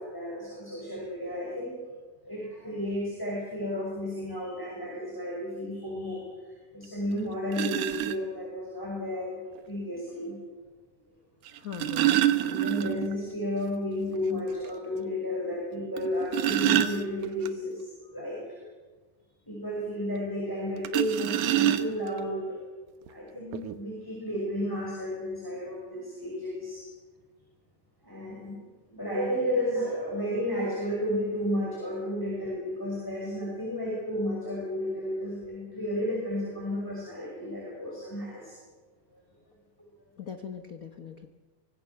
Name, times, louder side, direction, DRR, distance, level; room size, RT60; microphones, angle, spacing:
voice 1, 0.0-1.8 2.2-10.4 12.4-18.6 19.5-22.6 23.1-26.9 28.0-28.6 28.9-38.6 39.1-39.2, left 1 dB, 5° left, -3 dB, 5.9 m, -32 dB
sound 1, 6.8-6.9 7.5-8.2 9.6-9.7 11.5-13.2 13.5-13.6 14.0-14.1 14.6-14.7 16.0-17.5 20.8-22.2 23.1-23.2 23.5-23.7, right 13 dB, 80° right, 2.4 m, -26 dB
voice 2, 11.5-12.1 40.2-41.3, left 7 dB, 85° left, 7 dB, 0.7 m, -41 dB
25.0 x 19.5 x 7.0 m, 1.3 s
omnidirectional pair, 3.4 m